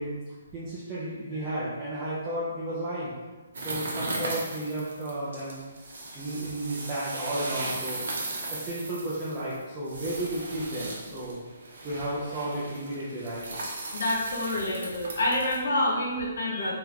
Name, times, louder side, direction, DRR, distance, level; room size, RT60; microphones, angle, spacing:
voice 1, 0.0-3.2 3.6-5.6 5.9-11.4 11.8-13.4, right 1 dB, 15° right, -9 dB, 0.6 m, -33 dB
sound 1, 3.5-15.6, right 2 dB, 75° right, 1.0 m, -37 dB
voice 2, 13.9-16.7, left 1 dB, 75° left, -2 dB, 1.1 m, -27 dB
3.6 x 3.5 x 3.0 m, 1.3 s
hypercardioid pair, 175°, 0 cm